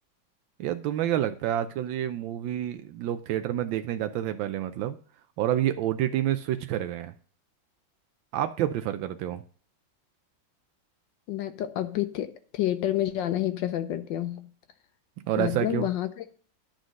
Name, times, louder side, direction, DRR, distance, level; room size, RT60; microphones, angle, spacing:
voice 1, 0.6-5.0 5.4-7.1 8.3-9.4 15.3-15.9, right 11 dB, 80° right, 10 dB, 1.3 m, -28 dB
voice 2, 11.3-14.5 15.4-16.2, left 12 dB, 75° left, 10 dB, 1.3 m, -29 dB
10.5 x 3.9 x 6.2 m, 0.43 s
omnidirectional pair, 2.1 m